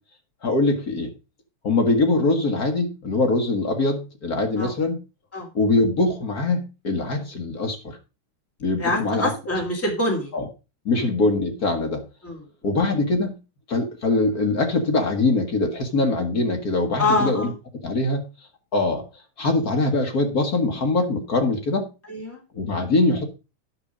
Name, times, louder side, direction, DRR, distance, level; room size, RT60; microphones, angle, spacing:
voice 1, 0.4-1.1 1.6-5.0 5.5-8.0 8.6-9.5 10.3-10.5 10.8-12.0 12.6-13.4 13.7-17.5 17.8-18.2 18.7-19.0 19.4-21.9 22.5-23.2, left 2 dB, 55° left, 3 dB, 1.0 m, -22 dB
voice 2, 8.8-10.3 11.0-11.1 12.2-12.4 17.0-17.5 22.1-22.4, left 2 dB, 5° left, -1 dB, 3.0 m, -25 dB
10.5 x 6.1 x 5.0 m, 0.30 s
omnidirectional pair, 3.7 m